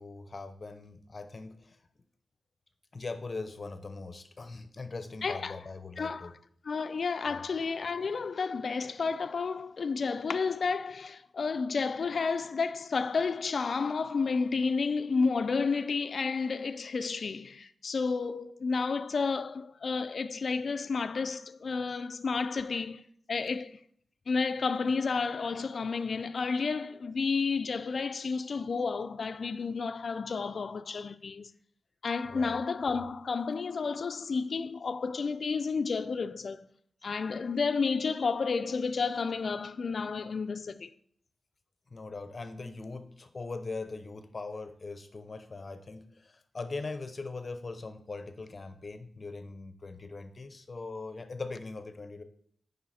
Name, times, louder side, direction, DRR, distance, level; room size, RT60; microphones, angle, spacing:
voice 1, 0.0-1.8 2.9-6.3 7.3-7.4 32.3-32.6 41.9-52.2, left 3 dB, 40° left, 0.9 m, -41 dB
voice 2, 5.2-5.6 6.0-6.3 6.6-23.8 24.3-31.5 32.0-36.7 37.0-40.9, left 4 dB, 60° left, 0.5 m, -31 dB
9.5 x 5.5 x 4.3 m
wide cardioid pair, 95°, 0 cm